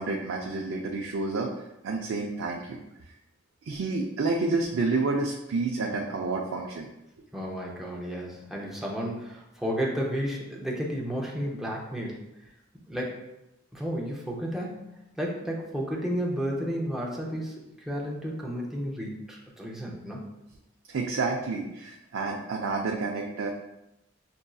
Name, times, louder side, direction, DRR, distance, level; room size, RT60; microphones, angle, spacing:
voice 1, 0.0-1.5 1.8-2.8 3.6-6.9 20.9-23.5, right 3 dB, 65° right, 0 dB, 0.4 m, -29 dB
voice 2, 7.3-12.2 12.9-13.2 13.7-17.6 17.9-20.3, equal, ahead, -3 dB, 0.6 m, -32 dB
6.0 x 2.6 x 2.3 m, 0.90 s
head